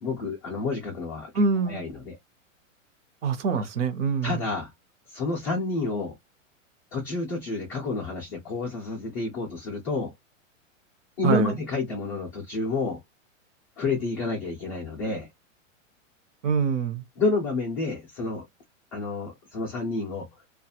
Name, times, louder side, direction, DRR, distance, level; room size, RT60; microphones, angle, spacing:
voice 1, 0.0-1.3 1.6-2.1 4.2-4.7 5.1-6.1 6.9-10.1 11.2-13.0 13.8-15.3 17.2-18.4 18.9-20.3, left 3 dB, 20° left, 0.3 m, -29 dB
voice 2, 1.3-1.8 3.2-4.4 11.2-11.5 16.4-17.0, right 5 dB, 65° right, 0.8 m, -25 dB
2.3 x 2.3 x 2.7 m
supercardioid pair, 155°, 40 cm